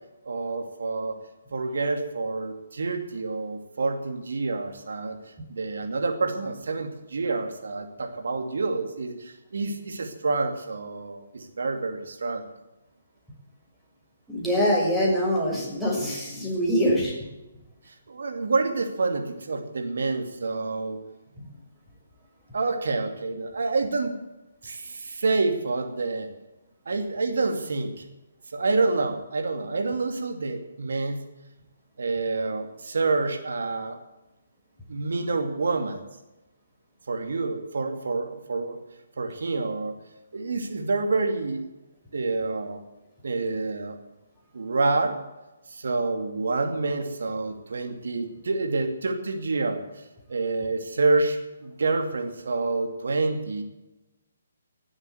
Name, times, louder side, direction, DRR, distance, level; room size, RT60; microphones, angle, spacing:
voice 1, 0.3-1.2 1.5-5.2 5.5-12.5 18.1-21.0 22.5-24.2 24.6-26.3 26.9-28.0 28.5-31.3 32.0-34.0 34.9-36.0 37.1-38.8 39.2-40.0 40.3-41.7 42.1-42.8 43.2-44.0 44.5-45.2 45.7-49.8 50.3-53.6, right 3 dB, 70° right, 6 dB, 2.6 m, -28 dB
voice 2, 14.3-17.1, equal, ahead, -5 dB, 6.0 m, -24 dB
17.5 x 8.1 x 8.1 m, 1.0 s
figure-of-eight pair, 140°, 0 cm